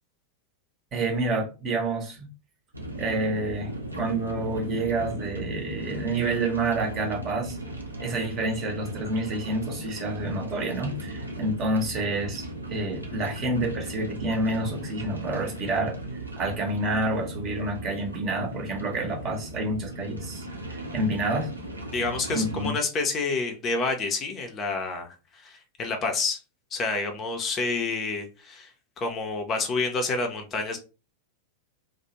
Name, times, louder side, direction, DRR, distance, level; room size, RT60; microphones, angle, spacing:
voice 1, 0.9-2.3 3.0-7.6 8.0-16.0 16.4-21.5 22.3-22.7, right 2 dB, 30° right, 2 dB, 0.8 m, -28 dB
sound 1, 2.7-22.7, right 1 dB, 85° right, 0.5 m, -37 dB
voice 2, 21.9-26.4 26.7-28.7 29.0-30.8, left 3 dB, 30° left, 4 dB, 0.5 m, -28 dB
2.3 x 2.0 x 2.9 m, 0.32 s
figure-of-eight pair, 90°, 0 cm